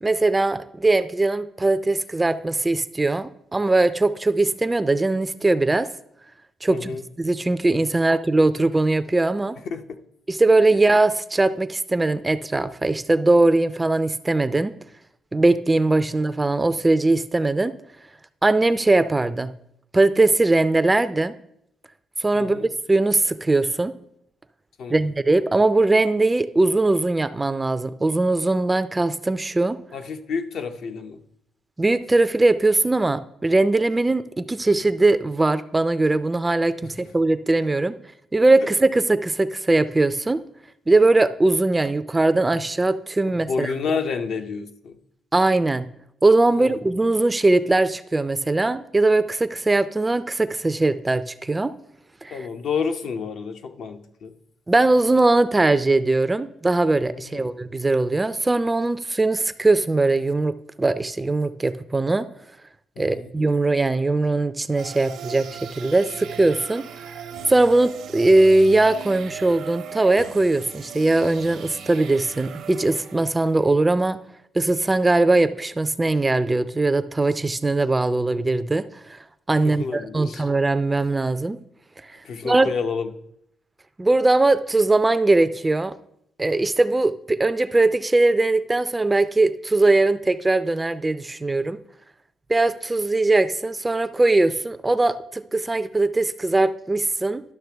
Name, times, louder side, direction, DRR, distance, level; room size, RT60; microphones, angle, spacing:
voice 1, 0.0-5.9 6.6-6.9 7.2-9.6 10.3-14.7 15.3-17.7 18.4-19.5 19.9-21.3 22.2-23.9 24.9-29.8 31.8-37.9 38.3-40.4 40.9-43.7 45.3-45.8 46.2-51.7 52.2-52.4 54.7-62.3 63.0-65.5 65.8-66.8 67.5-74.2 74.5-78.8 79.1-79.2 79.5-81.6 82.4-82.7 84.0-85.9 86.4-91.8 92.5-97.4, right 2 dB, 20° right, 13 dB, 0.4 m, -20 dB
voice 2, 6.7-7.0 9.6-10.0 10.7-10.8 22.3-22.7 24.8-25.1 29.9-31.2 36.8-37.0 38.6-38.7 43.3-45.0 46.5-46.8 52.3-54.3 57.2-57.5 63.0-63.3 79.6-80.4 82.2-83.1, left 5 dB, 65° left, 6 dB, 0.7 m, -30 dB
sound 1, 64.8-73.6, right 7 dB, 80° right, 0.9 m, -38 dB
12.0 x 5.8 x 3.4 m, 0.76 s
cardioid pair, 90°, 0 cm